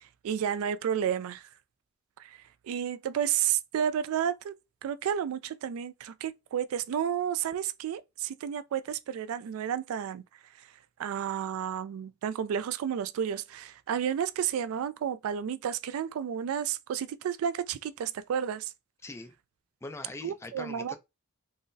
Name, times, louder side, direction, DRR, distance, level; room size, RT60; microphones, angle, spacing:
voice 1, 0.0-1.5 2.2-2.4 2.6-4.5 4.8-10.2 11.0-18.7 20.2-21.0, right 8 dB, 80° right, 0.3 m, -31 dB
voice 2, 19.0-19.3 19.8-21.0, left 2 dB, 15° left, 0.3 m, -42 dB
3.7 x 2.0 x 2.6 m
head